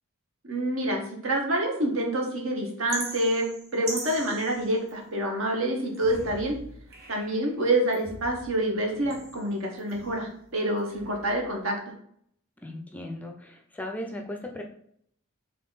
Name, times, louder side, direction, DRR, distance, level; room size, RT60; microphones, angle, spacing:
voice 1, 0.4-6.6 7.1-11.7, right 1 dB, 70° right, 1 dB, 1.1 m, -27 dB
sound 1, 2.9-5.3 5.8-7.5 7.9-10.4 10.8-11.4, right 2 dB, 50° right, 1.1 m, -41 dB
voice 2, 12.6-14.6, left 1 dB, 5° left, 3 dB, 0.4 m, -37 dB
3.8 x 3.4 x 4.0 m, 0.68 s
head